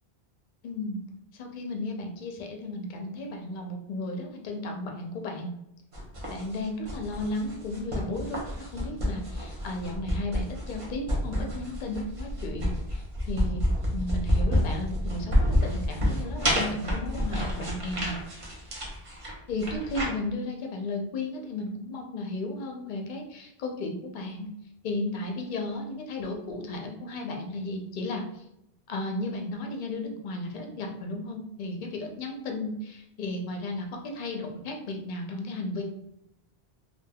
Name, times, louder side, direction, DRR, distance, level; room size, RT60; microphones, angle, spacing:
voice 1, 0.6-1.0 1.3-5.5 6.3-13.6 13.9-18.2 19.5-24.5 24.8-28.4 28.9-35.8, left 2 dB, 60° left, 2 dB, 0.6 m, -34 dB
sound 1, 5.9-20.0, equal, 35° right, 0.7 m, -29 dB
3.3 x 2.2 x 2.2 m, 0.79 s
omnidirectional pair, 1.0 m